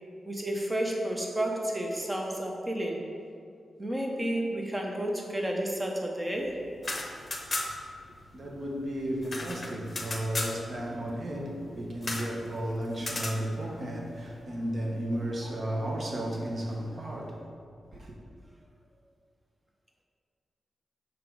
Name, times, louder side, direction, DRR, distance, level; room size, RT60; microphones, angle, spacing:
voice 1, 0.3-3.1 3.8-6.6, right 1 dB, 15° right, 0.8 m, -31 dB
sound 1, 6.7-8.0 8.2-8.3 8.6-10.6 12.0-12.3 13.0-13.4, left 2 dB, 30° left, 0.9 m, -34 dB
voice 2, 8.3-17.5 17.9-18.1, right 1 dB, 45° right, 1.1 m, -34 dB
5.8 x 4.9 x 4.7 m
wide cardioid pair, 100°, 0 cm